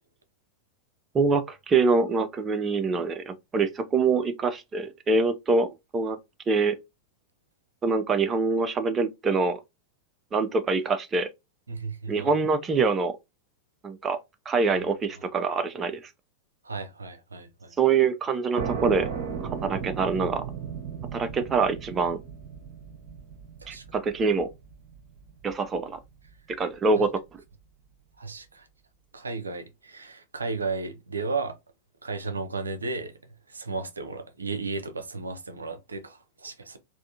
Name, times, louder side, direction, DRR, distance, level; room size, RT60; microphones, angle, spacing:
voice 1, 1.1-6.2 6.5-6.8 7.8-9.6 10.3-11.3 12.1-13.2 13.8-14.2 14.5-16.0 17.8-19.1 19.6-20.4 21.1-22.2 23.7-24.5 25.4-26.0 26.6-27.1, right 4 dB, 20° right, 0.4 m, -25 dB
voice 2, 11.7-12.3 16.6-17.7 23.6-23.8 27.0-27.1 28.2-28.7 29.1-31.6 32.0-33.1 33.5-36.8, right 3 dB, 75° right, 0.5 m, -34 dB
sound 1, 18.6-25.9, right 7 dB, 45° right, 0.8 m, -36 dB
3.4 x 2.5 x 2.6 m
figure-of-eight pair, 90°, 0 cm